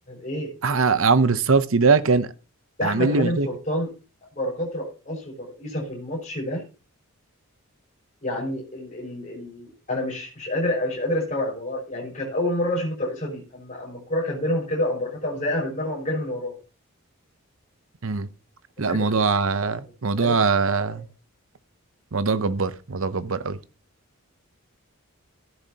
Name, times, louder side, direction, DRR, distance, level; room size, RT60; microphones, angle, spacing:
voice 1, 0.1-0.5 2.8-3.9 4.4-6.6 8.2-16.6 18.8-19.2 20.1-20.4 20.9-21.0, left 1 dB, 35° left, 5.4 m, -28 dB
voice 2, 0.6-2.3 2.8-3.5 18.0-18.3 18.8-21.1 22.1-23.6, right 4 dB, 65° right, 0.7 m, -21 dB
14.0 x 10.0 x 2.8 m
head